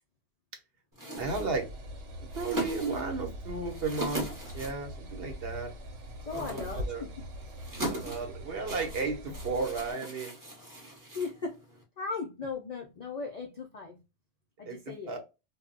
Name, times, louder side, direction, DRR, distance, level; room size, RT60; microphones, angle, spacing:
sound 1, 0.9-11.8, right 1 dB, 20° right, 0.7 m, -41 dB
voice 1, 1.2-1.7 2.3-4.3 4.5-5.7 6.3-7.1 7.9-10.4 14.7-15.2, right 4 dB, 60° right, 0.9 m, -34 dB
sound 2, 1.2-9.9, equal, 90° right, 0.9 m, -42 dB
voice 2, 6.3-7.1 11.0-11.5 12.0-14.0 14.6-15.2, left 4 dB, 60° left, 0.4 m, -37 dB
2.2 x 2.0 x 3.7 m
omnidirectional pair, 1.2 m